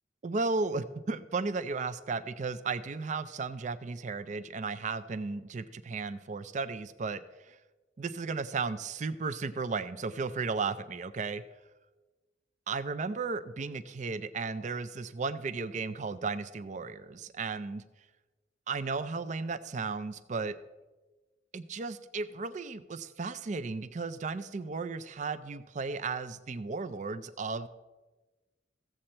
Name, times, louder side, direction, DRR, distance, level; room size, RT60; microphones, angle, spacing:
voice 1, 0.2-7.6 8.0-11.4 12.7-17.8 18.7-20.6 21.5-27.7, right 4 dB, 40° right, 12 dB, 0.4 m, -35 dB
15.0 x 7.7 x 4.3 m, 1.2 s
head